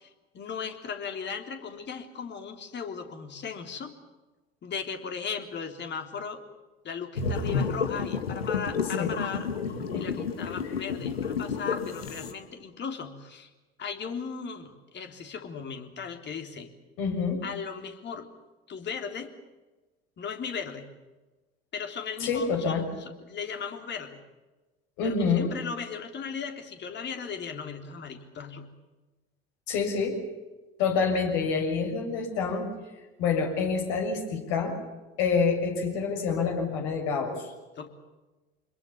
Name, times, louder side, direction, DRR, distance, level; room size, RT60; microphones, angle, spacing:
voice 1, 0.0-3.9 4.6-6.4 6.8-9.5 9.9-13.5 13.8-16.7 17.4-18.3 18.7-19.3 20.2-20.9 21.7-24.2 25.0-28.7 37.8-37.9, left 6 dB, 35° left, 5 dB, 3.7 m, -37 dB
sound 1, 7.2-12.3, left 5 dB, 80° left, 2.4 m, -31 dB
voice 2, 9.8-10.2 17.0-17.4 22.2-22.9 25.0-25.5 29.7-30.2 30.8-32.7 33.2-34.8 35.2-37.5, left 5 dB, 60° left, 2 dB, 6.9 m, -27 dB
26.5 x 22.0 x 7.2 m, 1.2 s
figure-of-eight pair, 70°, 29 cm